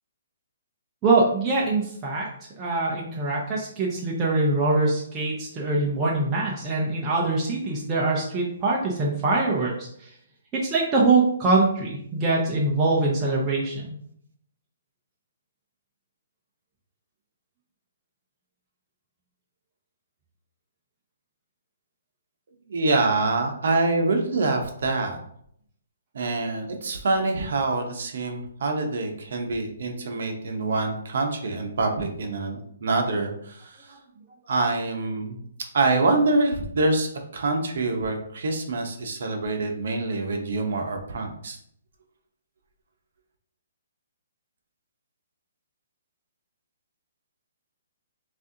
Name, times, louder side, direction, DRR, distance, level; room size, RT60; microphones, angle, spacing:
voice 1, 1.0-2.3 2.6-9.9 10.6-13.9, right 3 dB, 10° right, -4 dB, 0.4 m, -23 dB
voice 2, 22.7-25.2 26.1-33.9 34.5-35.4 35.7-41.6, right 3 dB, 50° right, 3 dB, 0.8 m, -25 dB
6.2 x 2.5 x 2.7 m, 0.68 s
hypercardioid pair, 180°, 0 cm